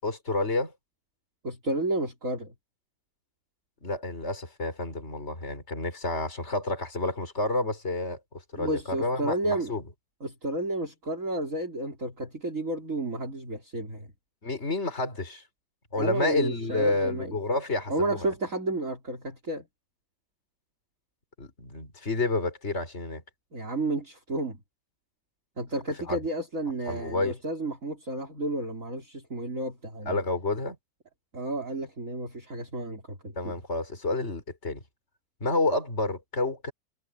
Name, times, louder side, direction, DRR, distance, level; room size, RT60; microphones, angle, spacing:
voice 1, 0.0-0.7 3.8-8.2 8.5-9.8 14.4-15.4 15.9-18.3 21.4-23.2 26.1-26.2 26.9-27.4 30.1-30.8 33.3-34.8 35.4-36.7, left 2 dB, 35° left, 4.9 m, -29 dB
voice 2, 1.4-2.5 8.5-9.7 10.2-14.1 16.0-17.3 17.9-19.7 23.5-24.6 25.6-30.2 31.3-33.5, right 2 dB, 40° right, 4.5 m, -31 dB
omnidirectional pair, 2.0 m